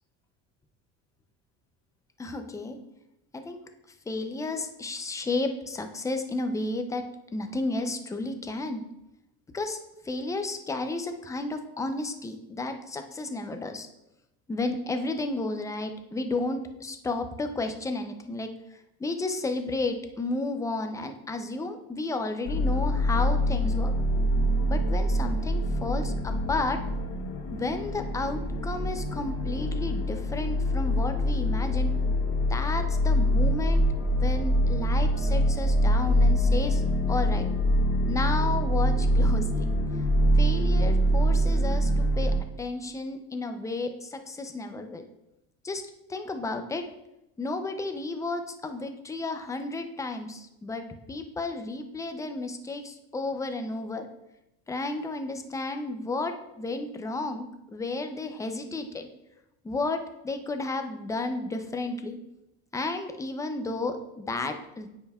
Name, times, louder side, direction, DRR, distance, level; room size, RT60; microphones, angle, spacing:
voice 1, 2.2-2.8 3.3-3.6 4.1-7.1 7.3-8.8 9.5-9.8 10.0-13.9 14.5-23.9 24.6-26.8 27.5-31.9 32.5-36.8 37.1-37.5 38.1-39.7 40.4-45.0 45.6-45.8 46.1-46.9 47.4-54.1 54.7-59.1 59.6-62.2 62.7-64.9, left 2 dB, 10° left, 6 dB, 0.4 m, -32 dB
sound 1, 22.5-42.4, equal, 75° left, 1.0 m, -25 dB
8.8 x 5.6 x 2.3 m, 0.89 s
cardioid pair, 130°, 33 cm